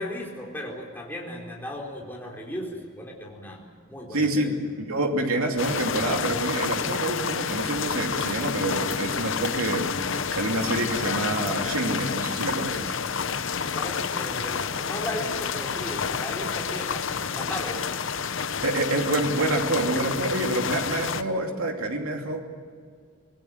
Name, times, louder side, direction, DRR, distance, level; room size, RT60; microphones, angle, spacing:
voice 1, 0.0-4.6 13.6-18.0, left 1 dB, 10° left, -2 dB, 4.3 m, -36 dB
voice 2, 4.1-9.9 10.3-12.9 18.6-22.4, right 2 dB, 80° right, 2 dB, 2.7 m, -27 dB
sound 1, 5.6-21.2, left 6 dB, 60° left, 0.8 m, -29 dB
25.5 x 19.5 x 7.9 m, 2.1 s
head